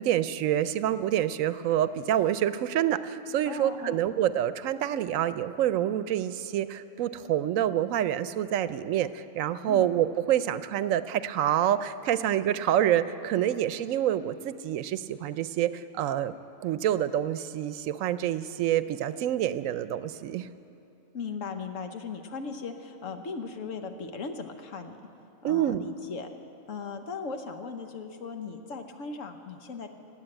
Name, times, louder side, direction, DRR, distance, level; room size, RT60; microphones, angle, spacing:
voice 1, 0.0-16.3 16.6-20.5 25.4-25.8, right 11 dB, 80° right, 14 dB, 1.0 m, -27 dB
voice 2, 3.4-4.0 9.7-9.9 21.1-25.0 25.4-26.3 26.7-29.9, left 4 dB, 75° left, 6 dB, 1.3 m, -38 dB
18.5 x 8.2 x 8.8 m, 2.7 s
omnidirectional pair, 1.4 m